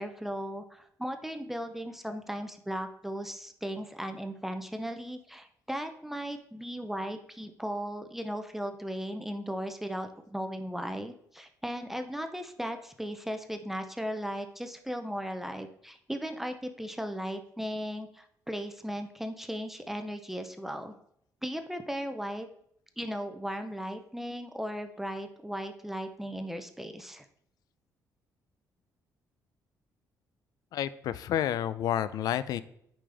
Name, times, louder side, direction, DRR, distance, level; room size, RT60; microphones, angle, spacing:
voice 1, 0.0-20.9 21.4-22.5 23.0-27.3, equal, 5° right, 7 dB, 0.5 m, -37 dB
voice 2, 30.7-32.6, left 11 dB, 75° left, 16 dB, 0.4 m, -30 dB
8.7 x 5.2 x 3.4 m, 0.73 s
cardioid pair, 140°, 7 cm